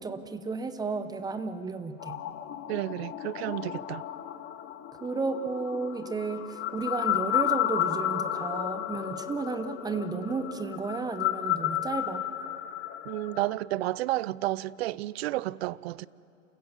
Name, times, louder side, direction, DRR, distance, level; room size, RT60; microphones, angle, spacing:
voice 1, 0.0-2.2 5.0-12.2, right 4 dB, 10° right, 0.8 m, -33 dB
sound 1, 2.0-13.5, left 13 dB, 25° left, 1.0 m, -33 dB
voice 2, 2.7-4.1 13.1-16.1, right 17 dB, 50° right, 0.5 m, -31 dB
28.5 x 15.5 x 7.2 m
hypercardioid pair, 120°, 43 cm